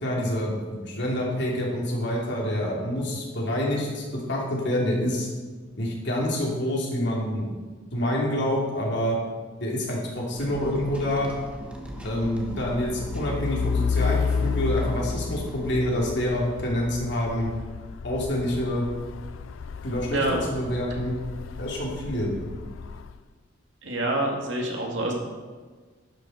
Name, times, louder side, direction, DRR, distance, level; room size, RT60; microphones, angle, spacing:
voice 1, 0.0-5.3 5.8-7.5 7.9-9.2 9.6-11.3 12.0-17.5 18.0-18.8 19.8-21.2 21.6-22.3, left 1 dB, 60° left, -3 dB, 2.9 m, -27 dB
sound 1, 10.4-15.7, equal, 5° right, 1.2 m, -39 dB
Truck, 11.9-23.2, left 5 dB, 80° left, 0.4 m, -32 dB
voice 2, 20.1-20.4 23.8-25.1, right 1 dB, 70° right, 0 dB, 2.2 m, -26 dB
12.0 x 7.3 x 5.2 m, 1.4 s
head